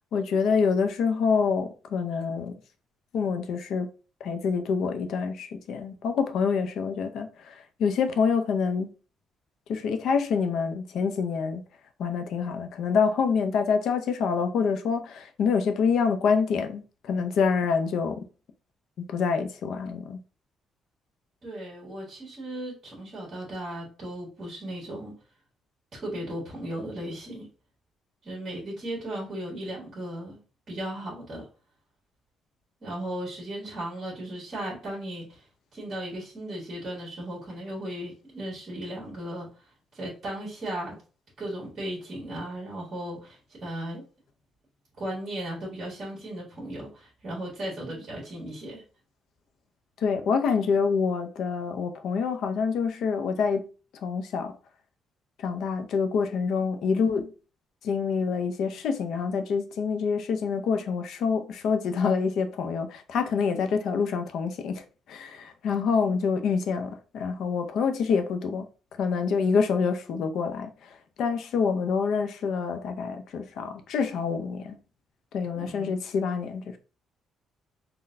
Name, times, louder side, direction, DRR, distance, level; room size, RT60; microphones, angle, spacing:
voice 1, 0.1-2.5 3.1-3.9 4.2-8.9 9.7-11.6 12.0-18.2 19.1-20.2 50.0-53.7 54.0-54.5 55.4-57.3 57.8-68.7 69.0-70.9 71.2-74.8 75.3-76.8, left 5 dB, 65° left, 0.5 m, -26 dB
voice 2, 21.4-25.1 25.9-27.5 28.2-30.4 30.7-31.4 32.8-35.4 35.7-39.5 39.9-41.0 41.4-44.0 45.0-48.8 75.5-75.9, right 1 dB, 35° right, 1.5 m, -36 dB
3.9 x 2.2 x 2.6 m
cardioid pair, 140°, 0 cm